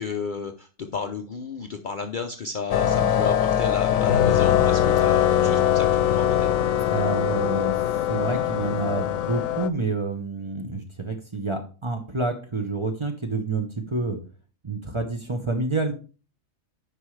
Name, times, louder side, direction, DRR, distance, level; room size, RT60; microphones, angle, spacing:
voice 1, 0.0-6.5, left 5 dB, 50° left, 6 dB, 0.6 m, -32 dB
sound 1, 2.7-9.7, left 10 dB, 90° left, 1.0 m, -22 dB
voice 2, 6.9-7.8 8.1-14.2 14.6-15.9, right 3 dB, 25° right, 4 dB, 0.9 m, -28 dB
9.5 x 5.4 x 3.2 m, 0.36 s
omnidirectional pair, 1.4 m